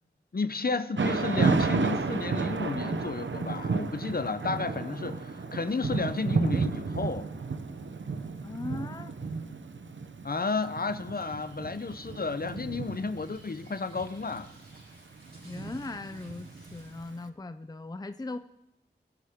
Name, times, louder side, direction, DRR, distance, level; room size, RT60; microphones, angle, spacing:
voice 1, 0.3-7.3 10.2-14.5, left 4 dB, 55° left, 0.8 m, -32 dB
Thunder / Rain, 1.0-17.0, right 4 dB, 85° right, 0.8 m, -32 dB
voice 2, 8.4-9.2 15.4-18.4, left 2 dB, 20° left, 0.5 m, -39 dB
sound 1, 11.1-17.1, right 1 dB, 50° right, 3.3 m, -58 dB
21.5 x 11.0 x 3.7 m
wide cardioid pair, 70°, 19 cm